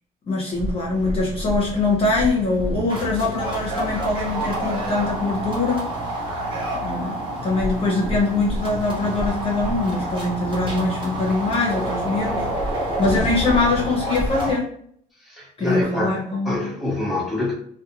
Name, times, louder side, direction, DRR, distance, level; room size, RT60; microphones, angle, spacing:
voice 1, 0.3-5.9 6.7-14.7 15.6-16.7, left 3 dB, 35° left, 0.8 m, -23 dB
sound 1, 0.6-14.5, right 1 dB, 30° right, 1.0 m, -28 dB
voice 2, 15.2-16.2 16.4-17.5, left 2 dB, ahead, 1.0 m, -26 dB
2.5 x 2.2 x 2.8 m
cardioid pair, 110°, 17 cm